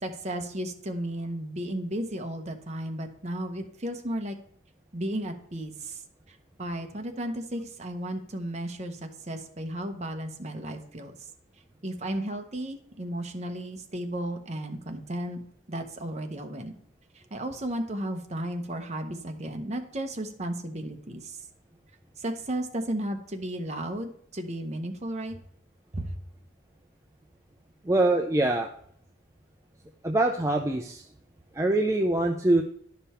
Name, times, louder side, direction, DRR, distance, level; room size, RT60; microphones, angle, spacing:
voice 1, 0.0-4.4 4.9-6.0 6.3-11.1 11.8-15.4 15.7-16.7 17.1-21.4 22.2-25.4 25.9-26.1, right 1 dB, 30° right, 5 dB, 0.9 m, -34 dB
voice 2, 27.8-28.7 30.0-31.1 31.5-32.6, right 2 dB, 15° right, 3 dB, 0.4 m, -24 dB
11.0 x 5.3 x 4.3 m, 0.66 s
head